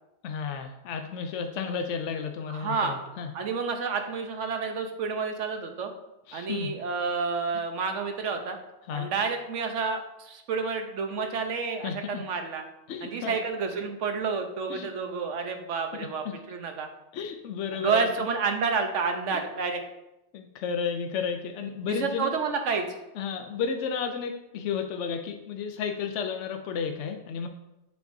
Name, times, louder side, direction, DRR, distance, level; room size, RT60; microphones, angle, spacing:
voice 1, 0.2-3.3 6.3-6.7 8.9-9.1 11.8-12.2 12.9-13.4 14.7-14.9 15.9-16.3 17.1-18.1 19.3-19.4 20.3-22.3 23.2-27.5, left 6 dB, 80° left, 5 dB, 0.9 m, -32 dB
voice 2, 2.5-3.0 3.3-5.9 6.3-8.6 8.9-12.6 13.0-16.9 17.7-19.8 21.9-23.0, right 5 dB, 90° right, 5 dB, 1.2 m, -29 dB
7.0 x 6.8 x 2.7 m, 0.90 s
omnidirectional pair, 1.2 m